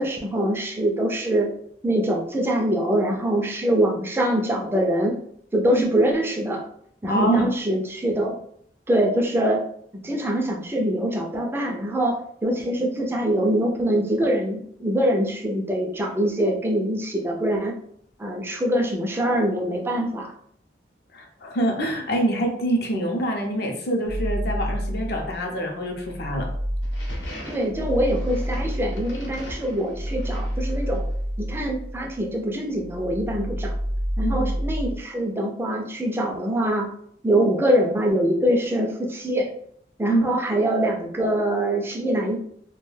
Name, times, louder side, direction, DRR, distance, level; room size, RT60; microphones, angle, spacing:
voice 1, 0.0-1.5 1.8-5.1 5.5-6.6 7.0-8.3 8.9-9.6 10.0-17.7 18.2-20.3 27.5-31.0 31.4-33.7 34.2-36.9 37.2-39.5 40.0-42.4, right 1 dB, 15° right, 1 dB, 0.4 m, -24 dB
voice 2, 7.1-7.5 21.1-26.5 34.2-34.4 40.1-40.2, right 1 dB, 60° left, 2 dB, 0.6 m, -25 dB
sound 1, 24.1-25.5 25.9-32.4 32.7-35.0, equal, 50° right, 0.6 m, -29 dB
sound 2, 26.8-31.1, equal, 80° left, 0.9 m, -41 dB
2.3 x 2.2 x 3.1 m, 0.65 s
head